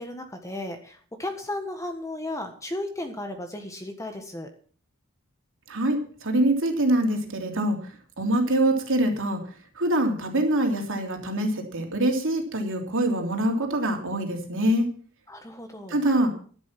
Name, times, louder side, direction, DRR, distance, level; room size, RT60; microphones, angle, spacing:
voice 1, 0.0-4.5 15.3-16.0, left 1 dB, 15° left, 5 dB, 1.5 m, -35 dB
voice 2, 5.7-7.9 8.2-9.4 9.7-14.9 15.9-16.3, right 1 dB, 60° right, 3 dB, 3.3 m, -24 dB
11.5 x 11.5 x 6.0 m, 0.44 s
head